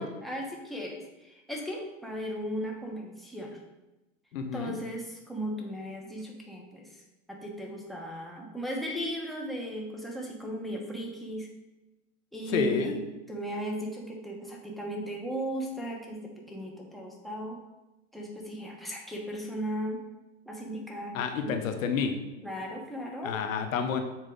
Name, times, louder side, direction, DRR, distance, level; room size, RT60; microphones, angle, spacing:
voice 1, 0.0-3.6 4.5-7.0 7.3-11.5 12.3-13.0 13.3-17.6 18.1-20.0 20.5-21.7 22.4-23.4, equal, ahead, -1 dB, 1.1 m, -36 dB
voice 2, 4.3-4.8 12.5-12.9 21.1-22.1 23.2-24.0, left 6 dB, 85° left, 7 dB, 1.0 m, -29 dB
7.4 x 4.6 x 3.9 m, 1.0 s
supercardioid pair, 125°, 39 cm